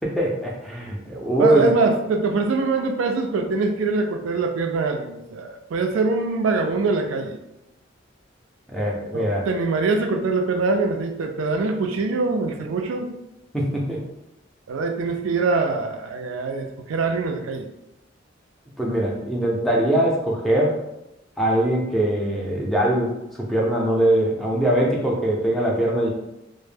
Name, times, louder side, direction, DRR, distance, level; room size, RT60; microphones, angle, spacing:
voice 1, 0.0-1.7 8.7-9.5 13.5-14.0 18.8-20.8 21.4-26.1, right 1 dB, ahead, -3 dB, 0.4 m, -22 dB
voice 2, 1.4-7.4 9.1-13.1 14.7-17.7, right 3 dB, 90° right, 5 dB, 0.3 m, -23 dB
2.1 x 2.0 x 3.2 m, 0.89 s
head